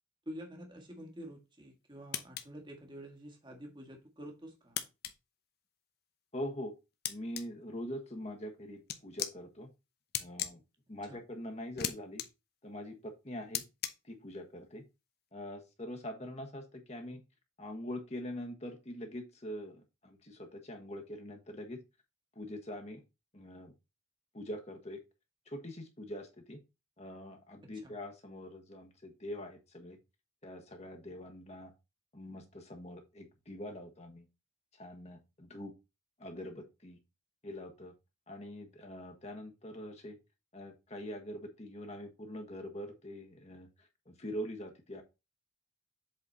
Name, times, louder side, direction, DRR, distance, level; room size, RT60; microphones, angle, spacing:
voice 1, 0.2-4.8 11.0-11.2 27.8-27.9, equal, 25° right, 3 dB, 1.6 m, -48 dB
sound 1, 2.1-2.4 4.8-5.1 7.0-7.4 8.9-9.3 10.1-10.5 11.8-11.9 12.2-12.3 13.5-13.9, left 10 dB, 50° left, 0.8 m, -35 dB
voice 2, 6.3-6.7 7.1-9.7 10.2-10.6 10.9-12.2 12.6-13.6 14.1-14.8 15.3-17.2 17.6-21.8 22.3-23.0 23.3-23.7 24.3-25.0 25.5-26.6 27.0-30.0 30.4-31.7 32.1-34.3 34.8-35.7 36.2-37.0 37.4-37.9 38.3-40.2 40.5-43.7 44.1-45.0, equal, 35° left, 3 dB, 1.4 m, -43 dB
7.8 x 4.2 x 4.1 m, 0.25 s
head